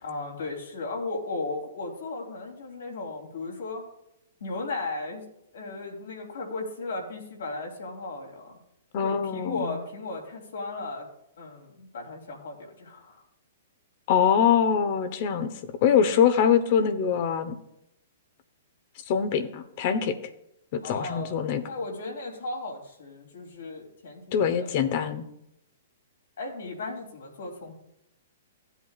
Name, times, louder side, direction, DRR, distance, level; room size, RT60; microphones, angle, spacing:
voice 1, 0.0-3.8 4.4-5.3 5.5-8.5 9.0-11.1 11.4-13.2 20.8-21.4 21.7-24.7 26.4-27.7, left 3 dB, 75° left, 1 dB, 3.3 m, -36 dB
voice 2, 8.9-9.7 14.1-15.5 15.8-17.6 19.1-20.2 20.7-21.6 24.3-25.2, left 7 dB, 50° left, 10 dB, 1.1 m, -23 dB
15.5 x 8.1 x 2.5 m, 0.81 s
hypercardioid pair, 125°, 0 cm